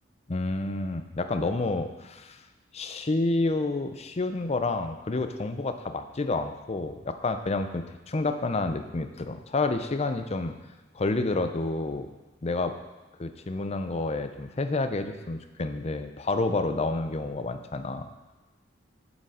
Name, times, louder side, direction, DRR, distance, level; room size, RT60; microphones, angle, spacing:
voice 1, 0.3-2.4 2.7-10.5 10.9-12.1 12.4-12.7 13.2-18.1, left 3 dB, 35° left, 8 dB, 0.5 m, -29 dB
7.3 x 6.8 x 4.9 m, 1.2 s
head